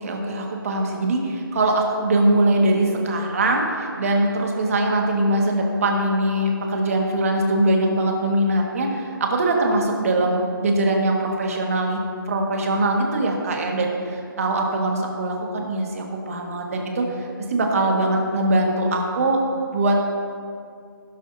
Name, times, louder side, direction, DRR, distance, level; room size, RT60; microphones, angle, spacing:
voice 1, 0.0-12.0 12.3-19.4 19.7-20.0, right 1 dB, 40° right, 1 dB, 1.8 m, -22 dB
15.5 x 12.5 x 2.8 m, 2.3 s
hypercardioid pair, 170°, 12 cm